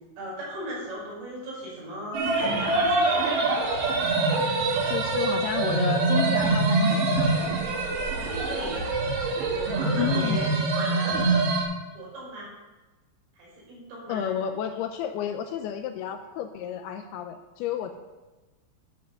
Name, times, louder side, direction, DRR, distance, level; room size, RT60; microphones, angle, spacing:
voice 1, 0.2-3.4 8.2-8.8 9.5-10.5 10.8-11.4 11.9-12.5 13.4-14.4, equal, 85° right, -5 dB, 6.9 m, -38 dB
sound 1, 2.1-11.6, right 3 dB, 60° right, 3.0 m, -24 dB
voice 2, 4.9-7.4 10.0-10.4 14.1-18.0, left 9 dB, 80° left, 7 dB, 2.4 m, -31 dB
13.0 x 5.7 x 6.6 m, 1.2 s
omnidirectional pair, 5.0 m